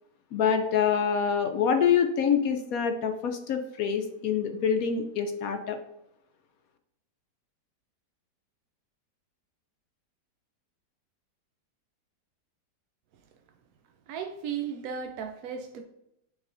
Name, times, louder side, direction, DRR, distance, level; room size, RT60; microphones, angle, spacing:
voice 1, 0.3-5.8, left 7 dB, 70° left, 6 dB, 0.9 m, -26 dB
voice 2, 14.1-15.8, right 7 dB, 70° right, 4 dB, 0.9 m, -35 dB
9.4 x 4.1 x 2.5 m, 0.81 s
omnidirectional pair, 1.8 m